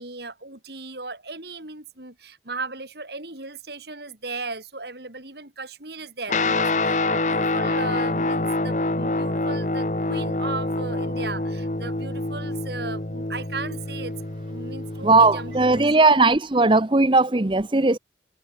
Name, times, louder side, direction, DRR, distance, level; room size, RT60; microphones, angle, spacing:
voice 1, 0.0-14.1 14.5-15.9, right 3 dB, 65° right, 4.7 m, -36 dB
Guitar, 6.3-15.9, left 2 dB, 40° left, 1.5 m, -26 dB
voice 2, 15.0-18.0, right 3 dB, 25° right, 0.8 m, -18 dB
head